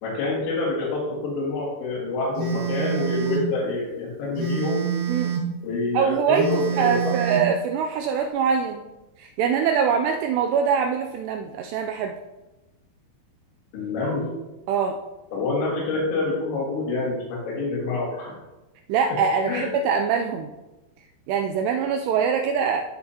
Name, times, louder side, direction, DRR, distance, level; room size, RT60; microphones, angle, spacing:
voice 1, 0.0-4.9 5.6-7.1 13.7-14.3 15.3-18.3 19.5-19.7, left 3 dB, 80° left, -7 dB, 4.2 m, -27 dB
Telephone, 2.4-3.5 4.4-5.5 6.4-7.5, right 7 dB, 65° right, 3.3 m, -27 dB
voice 2, 5.9-6.5 6.8-8.8 9.2-12.1 14.7-15.0 18.9-20.5 21.3-22.8, right 7 dB, 80° right, 4 dB, 2.5 m, -23 dB
13.0 x 5.6 x 2.8 m, 1.0 s
omnidirectional pair, 5.1 m